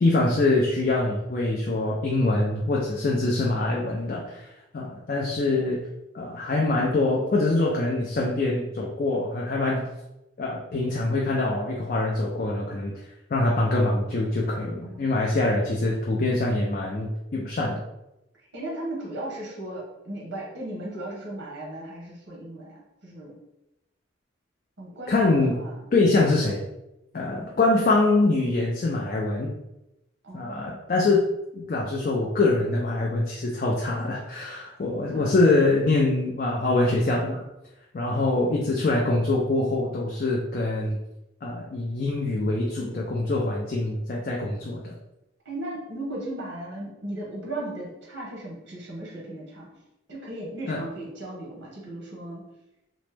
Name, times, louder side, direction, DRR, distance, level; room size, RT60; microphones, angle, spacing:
voice 1, 0.0-4.5 4.7-5.8 6.1-9.9 10.4-12.9 13.3-17.8 25.1-25.6 25.9-26.6 27.1-29.5 30.3-31.2 31.5-37.4 37.9-41.0 41.4-44.9 50.7-50.8, left 2 dB, 45° left, -3 dB, 0.4 m, -24 dB
voice 2, 14.8-15.4 18.5-23.4 24.8-25.8 27.3-27.6 30.2-30.9 35.1-35.3 45.4-49.7 50.1-52.4, right 1 dB, 80° right, -3 dB, 0.9 m, -36 dB
3.0 x 2.0 x 3.2 m, 0.91 s
head